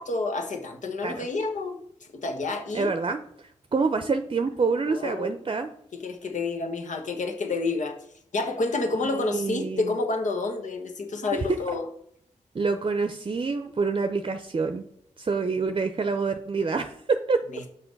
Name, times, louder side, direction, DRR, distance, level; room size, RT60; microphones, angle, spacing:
voice 1, 0.0-1.8 2.1-2.9 4.9-5.4 5.9-8.0 8.3-11.8 17.5-17.6, left 3 dB, 70° left, 1.3 m, -29 dB
voice 2, 2.7-5.7 9.0-10.0 11.3-11.4 12.5-14.8 15.2-17.4, right 4 dB, 40° right, 0.6 m, -27 dB
6.0 x 5.6 x 5.3 m
cardioid pair, 55°, 13 cm